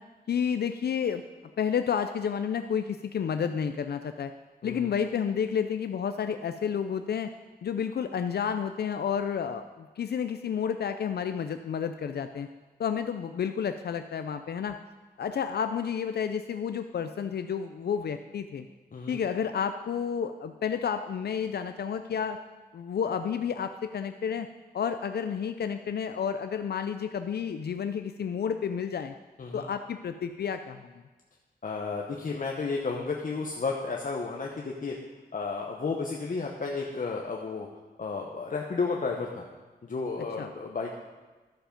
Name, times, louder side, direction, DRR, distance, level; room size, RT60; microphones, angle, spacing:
voice 1, 0.3-1.2 1.6-4.3 4.6-7.3 7.6-12.5 12.8-14.8 15.2-18.6 19.1-22.4 22.7-24.5 24.7-29.1 29.5-30.9 40.4-40.5, left 7 dB, 80° left, 8 dB, 0.4 m, -30 dB
voice 2, 31.6-35.0 35.3-37.7 38.0-39.4 39.8-41.0, left 4 dB, 55° left, 0 dB, 0.9 m, -32 dB
11.5 x 7.1 x 5.2 m, 1.3 s
wide cardioid pair, 125°, 17 cm